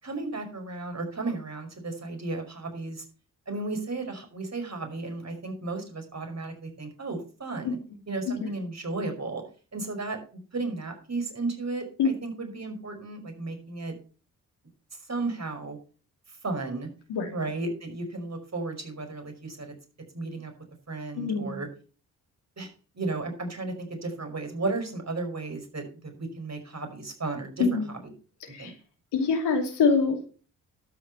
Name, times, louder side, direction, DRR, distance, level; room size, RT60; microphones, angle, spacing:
voice 1, 0.0-3.0 3.5-7.8 8.1-9.4 9.7-14.0 15.1-15.8 16.3-16.9 17.3-19.7 20.1-20.5 20.9-21.7 22.6-22.7 22.9-27.8 28.5-28.7, right 3 dB, 40° right, 5 dB, 5.4 m, -34 dB
voice 2, 21.1-21.6 27.6-27.9 28.5-28.7 29.1-30.2, left 5 dB, 75° left, 2 dB, 2.7 m, -25 dB
12.5 x 6.6 x 5.6 m, 0.38 s
hypercardioid pair, 40°, 41 cm